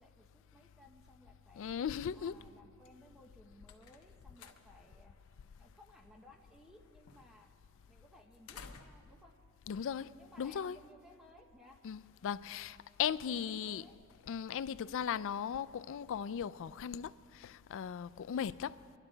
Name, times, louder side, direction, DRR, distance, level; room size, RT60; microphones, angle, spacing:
voice 1, 0.0-1.7 2.1-5.1 5.6-7.5 7.9-9.3 10.2-11.8 13.0-14.0, left 1 dB, ahead, 0.8 m, -60 dB
voice 2, 1.6-2.4 9.7-10.1 10.4-10.8 11.8-13.8 14.3-18.8, left 8 dB, 60° left, 0.3 m, -37 dB
sound 1, 3.3-10.6, left 5 dB, 80° left, 0.9 m, -59 dB
23.5 x 12.0 x 3.9 m
head